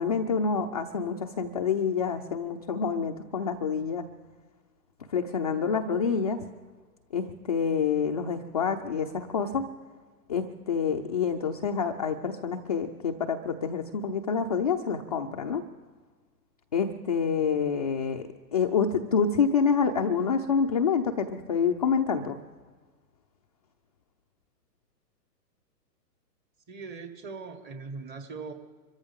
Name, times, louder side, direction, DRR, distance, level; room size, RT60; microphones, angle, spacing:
voice 1, 0.0-4.0 5.1-6.4 7.1-9.7 10.3-15.6 16.7-18.2 18.5-22.4, left 6 dB, 25° left, 2 dB, 0.4 m, -27 dB
voice 2, 26.7-28.5, right 4 dB, 20° right, 7 dB, 1.5 m, -40 dB
25.5 x 14.0 x 3.6 m, 1.4 s
hypercardioid pair, 140°, 49 cm